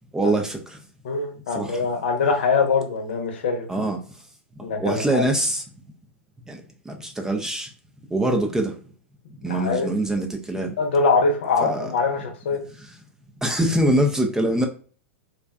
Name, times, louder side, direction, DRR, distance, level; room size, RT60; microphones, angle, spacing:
voice 1, 0.1-0.8 1.5-1.9 3.7-4.0 4.6-5.6 6.5-7.7 8.1-8.7 9.4-10.7 11.6-11.9 12.8-12.9 13.4-14.7, right 1 dB, 10° right, 0.4 m, -24 dB
voice 2, 1.0-3.7 4.6-5.2 9.5-9.9 10.8-12.6, left 4 dB, 65° left, 0.7 m, -23 dB
2.5 x 2.2 x 2.2 m
hypercardioid pair, 105°, 7 cm